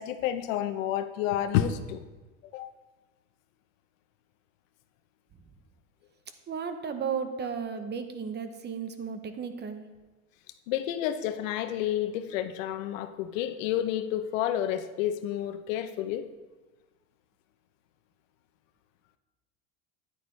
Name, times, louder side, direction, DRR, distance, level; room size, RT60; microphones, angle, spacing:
voice 1, 0.0-2.0 2.5-2.7 10.7-16.2, left 11 dB, 85° left, 10 dB, 0.7 m, -30 dB
voice 2, 6.5-9.8, right 6 dB, 25° right, 8 dB, 0.8 m, -34 dB
10.0 x 9.1 x 3.2 m, 1.2 s
supercardioid pair, 115°, 38 cm